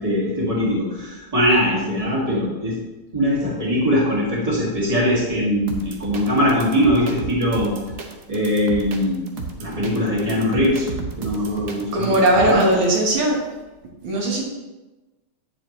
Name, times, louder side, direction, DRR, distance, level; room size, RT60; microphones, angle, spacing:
voice 1, 0.0-2.7 3.1-7.7 8.3-9.2 9.6-10.9 11.2-12.2 12.5-12.6, equal, 15° right, -6 dB, 2.1 m, -21 dB
sound 1, 5.7-13.0, right 5 dB, 60° right, 0.8 m, -33 dB
voice 2, 11.9-13.4 14.0-14.4, right 1 dB, 75° right, -2 dB, 2.3 m, -18 dB
9.1 x 7.0 x 3.1 m, 1.1 s
omnidirectional pair, 2.4 m